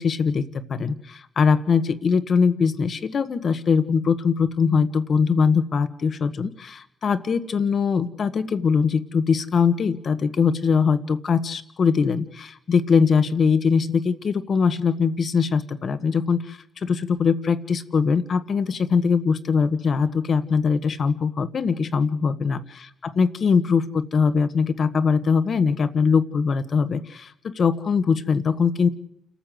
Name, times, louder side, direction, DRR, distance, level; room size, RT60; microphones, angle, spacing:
voice 1, 0.0-22.6 23.0-28.9, left 5 dB, 50° left, 12 dB, 1.4 m, -22 dB
28.5 x 13.5 x 7.8 m, 0.77 s
cardioid pair, 90°, 0 cm